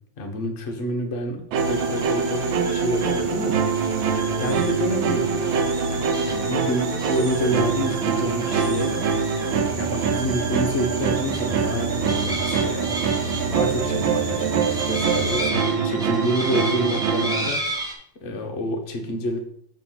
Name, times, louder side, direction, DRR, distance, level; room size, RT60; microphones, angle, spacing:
voice 1, 0.2-3.8 4.3-5.5 6.2-8.9 9.6-12.9 13.5-17.6 18.2-19.4, equal, 45° left, 2 dB, 1.2 m, -28 dB
sound 1, 1.5-15.4, right 2 dB, 60° right, 1.4 m, -34 dB
sound 2, 1.5-17.5, right 6 dB, 85° right, 1.4 m, -24 dB
sound 3, 1.6-17.9, right 1 dB, 5° right, 0.6 m, -34 dB
7.1 x 3.3 x 5.8 m, 0.67 s
omnidirectional pair, 2.1 m